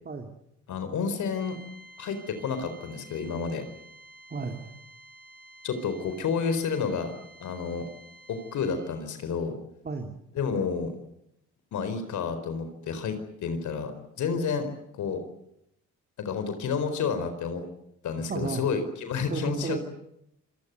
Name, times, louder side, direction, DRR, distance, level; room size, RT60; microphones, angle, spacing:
voice 1, 0.7-1.6 2.0-3.6 5.6-7.1 7.4-7.9 8.3-9.5 10.3-10.9 11.7-13.9 14.2-15.2 16.2-17.7 18.0-19.8, left 5 dB, 75° left, 9 dB, 4.3 m, -30 dB
sound 1, 1.3-9.0, right 1 dB, 5° left, 6.1 m, -51 dB
voice 2, 4.3-4.7 9.8-10.2 18.3-18.6 19.3-19.8, right 4 dB, 30° right, 4 dB, 2.8 m, -33 dB
26.5 x 20.0 x 9.5 m, 0.79 s
cardioid pair, 90°, 30 cm